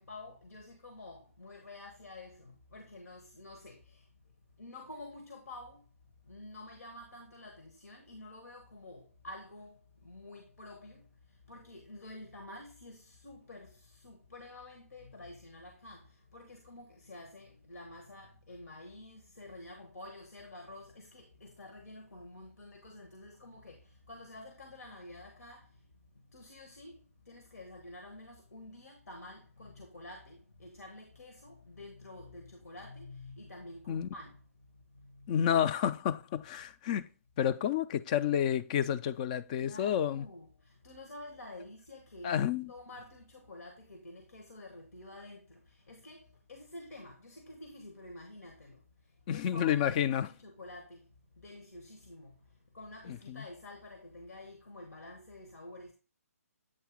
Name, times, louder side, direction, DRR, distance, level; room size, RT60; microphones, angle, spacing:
voice 1, 0.0-6.0 6.2-35.5 39.6-42.4 42.7-55.9, left 2 dB, 80° left, 1.2 m, -50 dB
voice 2, 35.3-37.1 37.4-40.2 42.2-42.7 49.3-50.3 53.1-53.4, left 9 dB, 30° left, 0.4 m, -30 dB
8.4 x 2.9 x 4.9 m
figure-of-eight pair, 145°, 8 cm